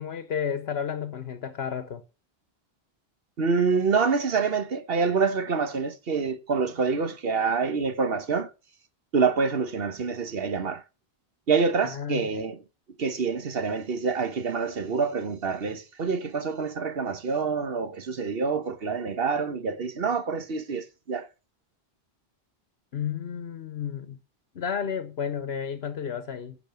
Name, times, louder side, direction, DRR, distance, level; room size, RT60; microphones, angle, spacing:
voice 1, 0.0-2.0 11.8-12.5 22.9-24.2 24.5-26.6, left 7 dB, 75° left, 1.2 m, -32 dB
voice 2, 3.4-8.5 9.1-10.8 11.5-12.6 13.0-21.3, right 5 dB, 70° right, 1.3 m, -26 dB
10.5 x 6.7 x 6.9 m
omnidirectional pair, 1.0 m